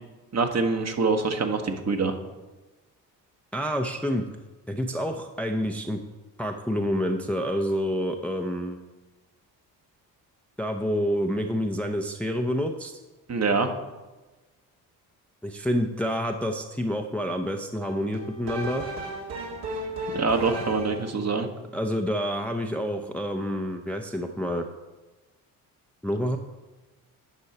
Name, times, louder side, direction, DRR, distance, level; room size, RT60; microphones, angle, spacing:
voice 1, 0.3-2.1 13.3-13.7 20.1-21.5, right 4 dB, 35° right, 6 dB, 1.2 m, -25 dB
voice 2, 3.5-4.3 4.7-6.0 6.4-8.8 10.6-12.9 15.4-18.8 21.7-24.6 26.0-26.4, equal, 5° left, 4 dB, 0.6 m, -28 dB
sound 1, 17.8-21.2, right 1 dB, 65° right, 1.8 m, -34 dB
9.9 x 5.5 x 4.2 m, 1.2 s
hypercardioid pair, 50°, 47 cm